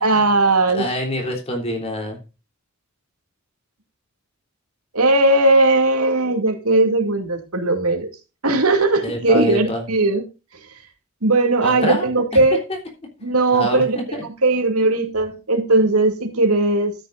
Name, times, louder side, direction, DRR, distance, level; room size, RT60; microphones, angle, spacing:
voice 1, 0.0-0.9 4.9-8.1 8.4-10.2 11.2-12.6 13.2-16.9, right 2 dB, 80° right, 4 dB, 2.4 m, -18 dB
voice 2, 0.7-2.2 9.0-9.8 11.6-12.4 13.5-14.2, equal, 25° left, 2 dB, 3.4 m, -26 dB
13.0 x 10.0 x 2.5 m, 0.29 s
head